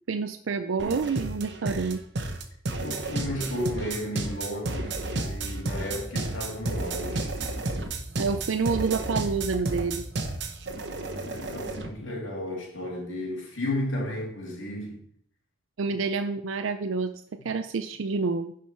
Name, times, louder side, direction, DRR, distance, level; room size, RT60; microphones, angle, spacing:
voice 1, 0.1-2.0 8.2-10.1 15.8-17.1 17.4-18.5, right 4 dB, 75° right, 0.5 m, -28 dB
sound 1, 0.8-11.9, right 2 dB, 55° right, 1.0 m, -32 dB
voice 2, 2.8-7.3 10.9-15.0 17.4-17.5, left 1 dB, 70° left, 2.8 m, -33 dB
11.0 x 5.0 x 4.4 m
head